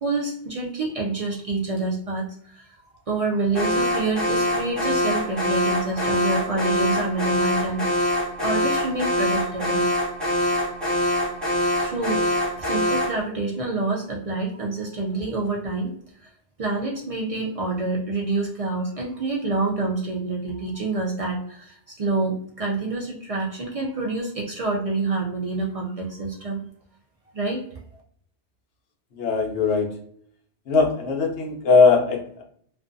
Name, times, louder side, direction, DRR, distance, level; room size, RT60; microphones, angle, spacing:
voice 1, 0.0-8.1 8.4-9.8 11.4-11.5 11.8-12.2 12.6-15.9 16.2-16.3 16.6-26.6 27.3-27.6, right 3 dB, 70° right, -2 dB, 0.3 m, -27 dB
Alarm, 3.5-13.2, equal, ahead, 0.8 m, -24 dB
voice 2, 29.1-29.9 30.7-32.4, left 4 dB, 70° left, 0 dB, 1.0 m, -20 dB
2.5 x 2.3 x 2.5 m, 0.63 s
omnidirectional pair, 1.2 m